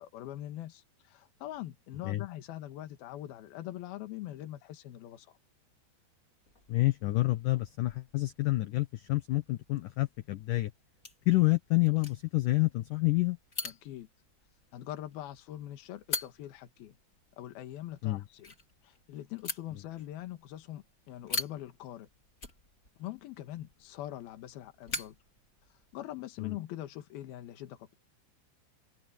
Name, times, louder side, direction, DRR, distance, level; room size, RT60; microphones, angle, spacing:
voice 1, 0.0-5.3 13.6-14.1 14.7-17.0 17.4-18.5 18.8-22.1 23.0-25.2 25.9-27.9, left 13 dB, 65° left, 3.2 m, -43 dB
sound 1, 6.4-26.1, left 3 dB, 20° left, 3.3 m, -45 dB
voice 2, 6.7-10.7 11.3-13.4 18.0-18.2 26.4-26.5, left 20 dB, 85° left, 1.8 m, -28 dB
omnidirectional pair, 5.1 m